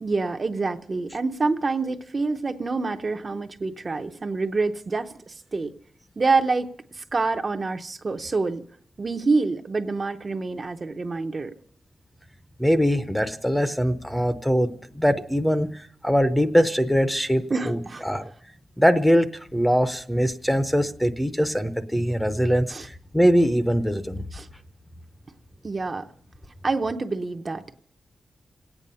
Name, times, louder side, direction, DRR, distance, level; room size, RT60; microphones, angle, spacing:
voice 1, 0.0-5.7 6.2-6.7 6.9-8.6 9.0-11.5 17.5-18.0 22.7-22.9 24.3-24.5 25.6-26.1 26.6-27.8, right 3 dB, 35° right, 5 dB, 0.7 m, -26 dB
voice 2, 12.6-18.3 18.8-24.2, equal, 5° left, 9 dB, 0.7 m, -22 dB
27.0 x 9.1 x 5.5 m, 0.64 s
wide cardioid pair, 140°, 0 cm